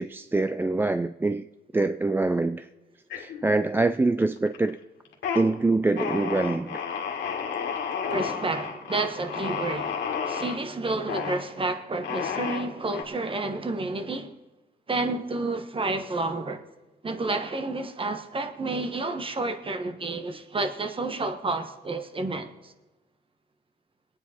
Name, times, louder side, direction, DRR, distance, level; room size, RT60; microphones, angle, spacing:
voice 1, 0.0-1.5 1.7-2.7 3.2-4.8 5.3-6.8, right 2 dB, 10° right, 0.3 m, -24 dB
sound 1, 3.1-3.8 4.2-4.7 5.1-5.4 6.0-10.6 11.1-11.4 12.0-13.0, left 6 dB, 80° left, 1.9 m, -31 dB
voice 2, 8.1-14.3 14.9-16.6 17.0-22.7, right 2 dB, 30° right, 1.2 m, -30 dB
22.0 x 9.3 x 4.3 m
cardioid pair, 90°, 18 cm